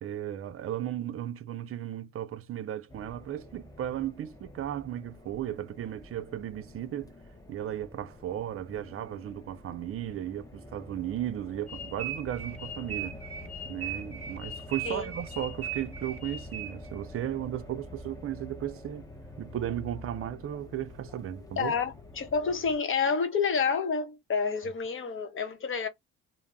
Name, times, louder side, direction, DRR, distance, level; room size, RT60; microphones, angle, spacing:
voice 1, 0.0-7.1 7.5-13.2 13.6-19.1 19.4-21.7, right 11 dB, 50° right, 0.4 m, -35 dB
sound 1, 2.9-22.8, left 1 dB, 10° left, 0.6 m, -47 dB
sound 2, 11.7-17.0, right 6 dB, 20° right, 1.2 m, -39 dB
voice 2, 21.6-25.9, left 5 dB, 40° left, 0.8 m, -29 dB
2.2 x 2.0 x 3.6 m
cardioid pair, 90°, 30 cm